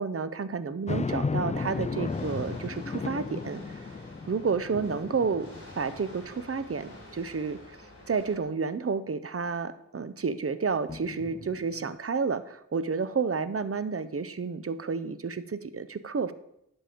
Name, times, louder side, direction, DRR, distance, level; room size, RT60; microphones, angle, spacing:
voice 1, 0.0-3.8 4.3-5.5 5.8-7.6 8.1-16.3, right 5 dB, 45° right, 13 dB, 0.7 m, -30 dB
sound 1, 0.9-6.4 6.9-7.0 10.9-12.0, left 4 dB, 20° left, 0.4 m, -35 dB
sound 2, 1.5-8.4, left 1 dB, 40° left, 4.1 m, -49 dB
10.0 x 6.7 x 5.1 m, 0.79 s
wide cardioid pair, 45°, 33 cm